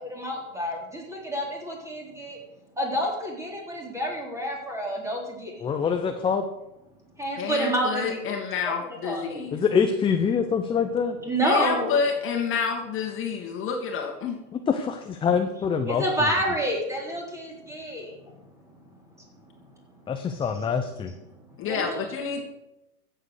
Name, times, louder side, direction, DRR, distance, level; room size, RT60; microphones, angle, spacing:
voice 1, 0.1-2.4 2.8-5.6 7.2-8.7 9.0-9.4 11.2-11.9 15.9-18.2 20.4-20.7 21.0-21.2 21.6-22.1, equal, 5° right, -1 dB, 3.9 m, -29 dB
voice 2, 5.6-6.4 9.5-11.2 14.7-16.0 20.1-21.1, left 6 dB, 10° left, 6 dB, 0.7 m, -24 dB
voice 3, 7.4-9.6 11.4-14.4 21.6-22.4, left 6 dB, 25° left, 3 dB, 2.2 m, -28 dB
14.5 x 7.8 x 6.6 m, 0.93 s
hypercardioid pair, 120°, 45 cm